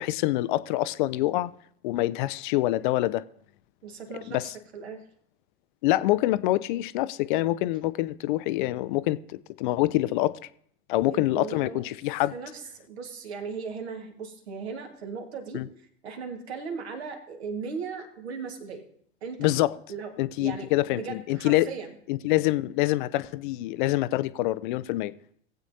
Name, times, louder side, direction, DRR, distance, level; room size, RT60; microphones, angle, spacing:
voice 1, 0.0-1.5 1.8-3.2 4.3-4.5 5.8-10.4 10.9-12.3 15.5-15.7 19.4-19.8 20.2-21.7 22.1-25.1, left 17 dB, 45° left, 0.5 m, -26 dB
voice 2, 3.8-5.1 11.0-11.8 12.3-15.6 16.0-18.9 19.2-19.5 19.9-20.1 20.4-22.0, right 5 dB, 65° right, 1.7 m, -37 dB
18.5 x 8.1 x 2.7 m
figure-of-eight pair, 85°, 34 cm